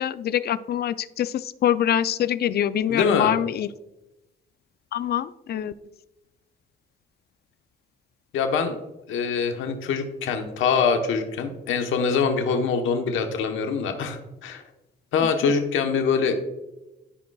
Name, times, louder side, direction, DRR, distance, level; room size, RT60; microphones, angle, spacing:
voice 1, 0.0-3.7 4.9-5.7 15.2-15.5, left 10 dB, 55° left, 15 dB, 0.4 m, -25 dB
voice 2, 2.9-3.3 8.3-8.8 9.1-14.6 15.1-16.4, left 5 dB, 80° left, 5 dB, 1.1 m, -24 dB
13.0 x 5.2 x 2.3 m, 0.97 s
cardioid pair, 90°, 20 cm